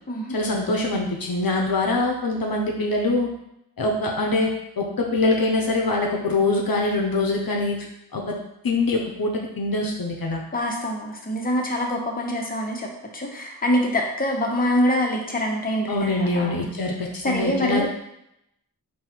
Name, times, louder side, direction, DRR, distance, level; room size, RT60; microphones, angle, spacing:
voice 1, 0.3-3.3 3.8-7.8 8.1-8.4 8.6-10.4 15.9-17.8, left 2 dB, 65° left, 0 dB, 0.7 m, -24 dB
voice 2, 10.5-12.9 13.1-16.7 17.2-17.9, left 1 dB, 25° left, 0 dB, 0.9 m, -25 dB
3.8 x 2.7 x 4.3 m, 0.80 s
wide cardioid pair, 55°, 38 cm